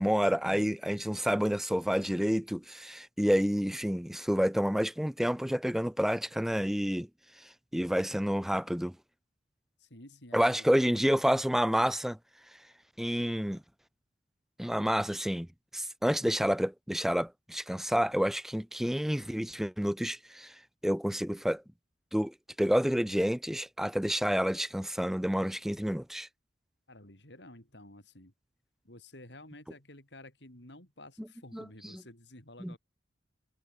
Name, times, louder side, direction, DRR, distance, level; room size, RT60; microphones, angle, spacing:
voice 1, 0.0-7.1 7.7-9.0 10.3-12.2 13.0-13.6 14.6-15.5 15.7-20.5 20.8-21.6 22.1-26.3 31.5-31.6 32.6-32.8, equal, ahead, 0.5 m, -29 dB
voice 2, 9.8-10.8 26.9-28.3 28.8-32.8, left 1 dB, 65° left, 7.1 m, -52 dB
head